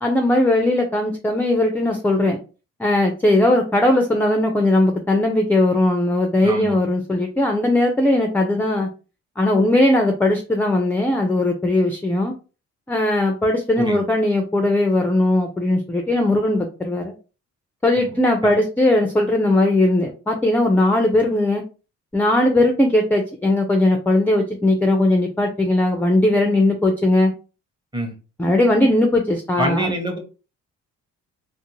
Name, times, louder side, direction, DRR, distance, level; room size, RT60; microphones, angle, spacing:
voice 1, 0.0-2.4 2.8-8.9 9.4-12.3 12.9-17.1 17.8-21.6 22.1-27.3 28.4-29.9, left 1 dB, 5° left, 4 dB, 0.4 m, -19 dB
voice 2, 6.4-6.8 13.8-14.0 18.0-18.1 18.4-18.5 27.9-28.2 29.6-30.2, right 1 dB, 15° right, 3 dB, 0.8 m, -25 dB
2.5 x 2.1 x 2.9 m, 0.33 s
cardioid pair, 90°, 30 cm